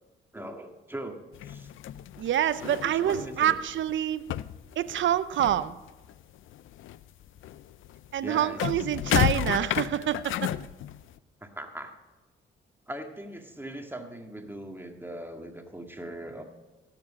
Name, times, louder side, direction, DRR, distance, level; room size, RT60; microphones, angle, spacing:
voice 1, 0.3-1.7 2.6-3.6 8.2-8.8 11.4-12.0 12.9-16.4, right 1 dB, 10° right, 4 dB, 1.8 m, -40 dB
sound 1, 1.3-4.0 4.2-6.2 6.5-11.2, left 12 dB, 70° left, 0.5 m, -32 dB
voice 2, 2.2-4.2 4.8-5.8 8.1-10.5, right 11 dB, 65° right, 15 dB, 0.7 m, -27 dB
17.0 x 7.8 x 4.9 m, 1.2 s
supercardioid pair, 60°, 21 cm